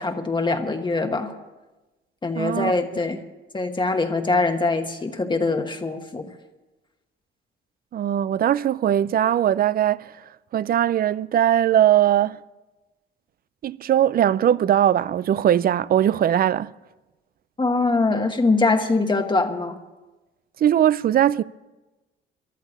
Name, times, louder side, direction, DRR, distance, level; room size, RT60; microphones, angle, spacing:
voice 1, 0.0-1.3 2.2-3.2 3.5-6.3 17.6-19.8, left 3 dB, 25° left, 1.2 m, -23 dB
voice 2, 2.3-2.7 7.9-10.1 10.5-12.4 13.6-16.7 20.6-21.4, right 11 dB, 50° right, 0.4 m, -20 dB
14.0 x 11.0 x 7.1 m
cardioid pair, 90°, 20 cm